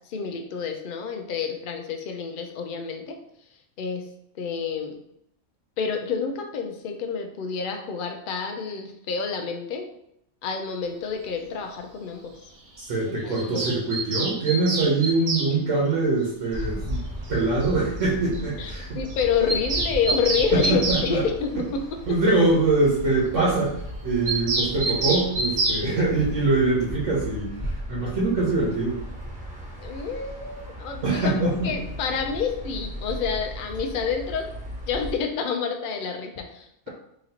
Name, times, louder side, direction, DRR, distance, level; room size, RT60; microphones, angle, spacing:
voice 1, 0.0-3.2 3.8-4.1 4.4-5.0 5.8-9.9 10.4-12.3 13.0-13.8 15.4-15.5 18.6-21.8 24.9-25.0 29.8-34.5 34.9-36.9, left 6 dB, 60° left, 4 dB, 0.5 m, -28 dB
voice 2, 12.8-17.0 17.3-18.9 20.5-21.2 22.1-29.0 31.0-31.8, right 3 dB, 70° right, -6 dB, 1.3 m, -23 dB
Bird vocalization bird call bird song, 13.3-15.5 16.9-17.0 17.3-17.4 17.6-17.7 18.0-18.1 18.3-18.4 18.7-18.8 19.1-21.1 24.3-25.8, right 2 dB, 55° right, 0.8 m, -27 dB
sound 1, 16.5-35.1, equal, 5° right, 0.8 m, -36 dB
3.9 x 3.0 x 2.8 m, 0.74 s
omnidirectional pair, 1.3 m